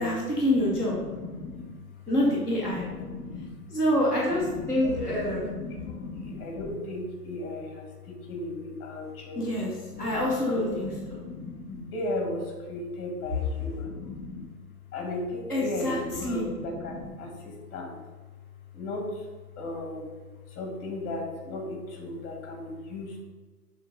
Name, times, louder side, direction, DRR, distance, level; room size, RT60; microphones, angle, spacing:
voice 1, 0.0-1.0 2.1-2.8 3.7-5.5 9.3-9.7 10.0-11.1 15.5-16.0 16.2-16.4, left 1 dB, 5° right, -10 dB, 0.3 m, -26 dB
voice 2, 0.6-1.7 2.6-3.5 4.3-9.5 9.9-14.5 14.9-18.0 18.7-19.3 19.6-20.1 20.5-23.2, left 2 dB, 25° left, 1 dB, 2.1 m, -36 dB
7.6 x 3.7 x 5.2 m, 1.3 s
hypercardioid pair, 130°, 47 cm